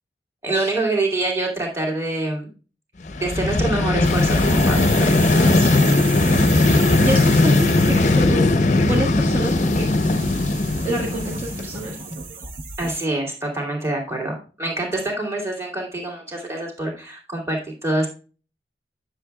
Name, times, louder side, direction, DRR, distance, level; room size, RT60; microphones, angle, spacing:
voice 1, 0.4-2.5 3.2-5.7 12.8-18.1, right 2 dB, 15° right, -1 dB, 2.5 m, -26 dB
Vehicle, 3.1-12.0, left 2 dB, 45° left, 0.6 m, -18 dB
sound 1, 4.0-13.1, right 6 dB, 50° right, 0.9 m, -35 dB
voice 2, 6.2-6.6 7.0-9.9 10.8-12.0, right 1 dB, 35° right, -4 dB, 1.6 m, -28 dB
10.5 x 7.0 x 2.3 m, 0.35 s
head